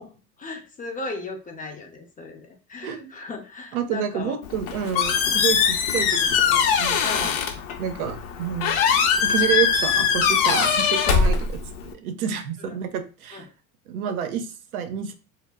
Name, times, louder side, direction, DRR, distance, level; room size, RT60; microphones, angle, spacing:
voice 1, 0.4-4.4 7.0-7.4 12.6-12.8 13.3-13.4, left 3 dB, 20° left, 3 dB, 0.5 m, -36 dB
voice 2, 2.8-3.1 3.7-7.3 7.8-11.6 11.9-13.5 13.9-15.1, right 8 dB, 90° right, 7 dB, 0.6 m, -29 dB
Squeak, 4.4-11.9, left 6 dB, 65° left, 0.6 m, -22 dB
2.0 x 2.0 x 3.4 m, 0.33 s
hypercardioid pair, 100°, 42 cm